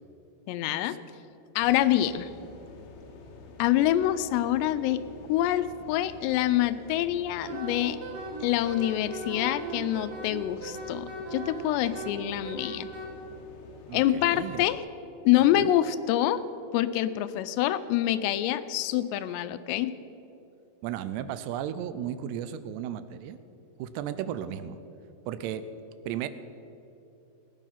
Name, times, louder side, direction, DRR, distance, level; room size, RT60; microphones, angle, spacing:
voice 1, 0.5-1.0 1.6-2.3 3.6-8.0 8.4-12.9 13.9-14.8 15.3-16.4 16.7-19.9, left 13 dB, 85° left, 13 dB, 2.7 m, -26 dB
sound 1, 1.6-14.8, left 3 dB, 70° left, 2.9 m, -48 dB
Wind instrument woodwind instrument, 7.4-13.1, right 3 dB, 50° right, 1.8 m, -38 dB
voice 2, 13.9-14.7 15.5-15.7 20.8-23.4 23.8-24.8 25.3-25.7 26.1-26.3, right 10 dB, 85° right, 12 dB, 2.7 m, -34 dB
18.5 x 9.2 x 5.7 m, 2.8 s
omnidirectional pair, 4.9 m